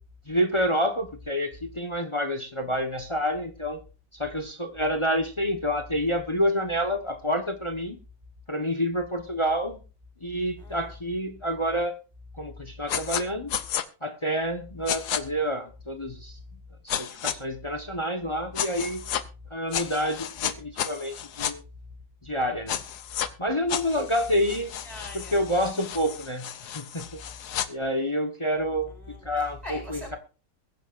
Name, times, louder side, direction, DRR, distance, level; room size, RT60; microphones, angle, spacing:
voice 1, 0.3-3.8 4.1-8.0 8.5-9.8 10.2-12.0 12.4-13.5 14.0-16.4 16.8-19.0 19.5-21.6 22.2-22.8 23.4-24.7 25.1-26.5 26.7-27.2 27.7-28.9 29.2-30.2, equal, 20° left, 6 dB, 0.8 m, -28 dB
voice 2, 10.6-10.9 21.8-21.9 24.8-25.4 28.9-30.2, left 2 dB, 15° right, -1 dB, 4.4 m, -41 dB
sound 1, 12.9-13.2 13.5-13.8 14.9-15.2 16.9-17.4 18.6-19.2 19.7-21.5 22.7-23.3 23.7-27.7, left 10 dB, 60° left, 1.2 m, -32 dB
22.5 x 10.0 x 2.5 m, 0.34 s
omnidirectional pair, 2.3 m